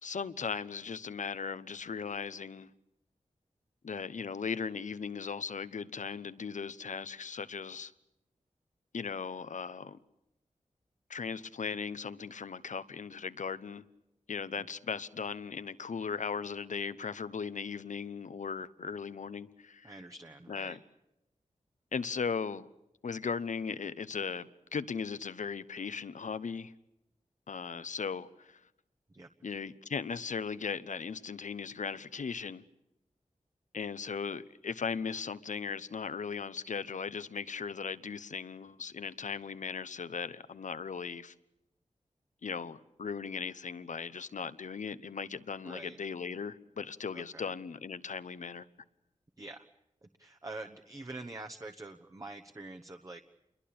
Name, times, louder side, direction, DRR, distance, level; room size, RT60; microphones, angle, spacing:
voice 1, 0.0-2.7 3.8-7.9 8.9-10.0 11.1-13.8 14.3-19.9 20.5-20.8 21.9-22.7 23.0-26.7 27.5-28.6 29.4-32.6 33.7-41.3 42.4-48.7, left 5 dB, 75° left, 1.0 m, -38 dB
voice 2, 19.8-20.8 29.1-29.3 45.6-46.0 47.1-47.5 49.4-49.7 50.0-53.2, right 2 dB, 25° right, 1.1 m, -46 dB
28.5 x 22.5 x 8.8 m
wide cardioid pair, 105°, 13 cm